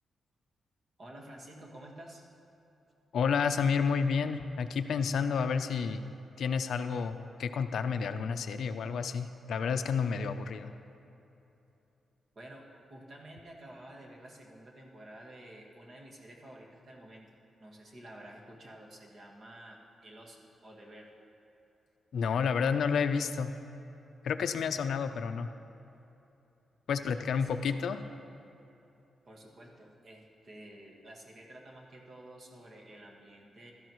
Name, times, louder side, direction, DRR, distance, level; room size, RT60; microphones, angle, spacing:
voice 1, 1.0-2.3 12.3-12.6 12.9-17.3 17.6-19.8 20.0-21.1 27.0-27.8 29.2-33.7, right 1 dB, 40° right, -1 dB, 1.7 m, -51 dB
voice 2, 3.1-6.1 6.4-10.7 22.1-23.5 24.2-25.5 26.9-28.0, left 6 dB, 70° left, 9 dB, 0.5 m, -30 dB
16.0 x 12.5 x 3.1 m, 2.9 s
wide cardioid pair, 145°, 0 cm